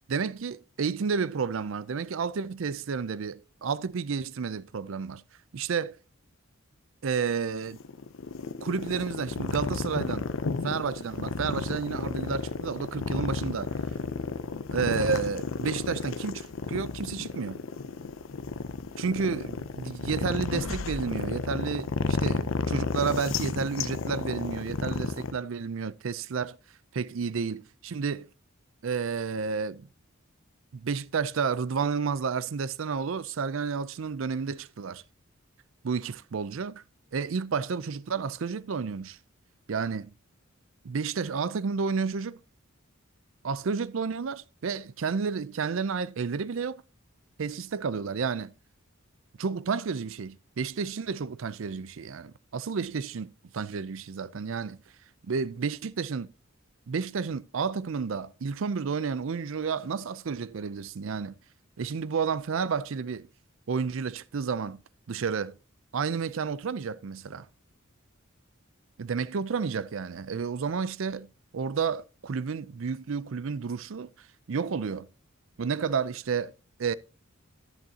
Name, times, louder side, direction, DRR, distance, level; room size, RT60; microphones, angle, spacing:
voice 1, 0.1-5.2 5.5-6.0 7.0-7.8 8.6-10.3 10.6-13.7 14.7-17.6 19.0-26.6 26.9-28.3 28.8-29.9 30.7-35.0 35.8-36.8 37.1-39.2 39.7-40.1 40.8-42.4 43.4-46.8 47.4-48.5 49.4-54.8 55.3-56.3 56.9-61.3 61.8-63.3 63.7-64.8 65.1-65.5 65.9-67.5 69.0-71.3 71.5-74.1 74.5-75.1 75.6-76.5 76.8-76.9, right 5 dB, 70° right, 0.5 m, -31 dB
sound 1, 7.6-25.3, left 4 dB, 70° left, 0.6 m, -32 dB
11.0 x 10.5 x 2.8 m
head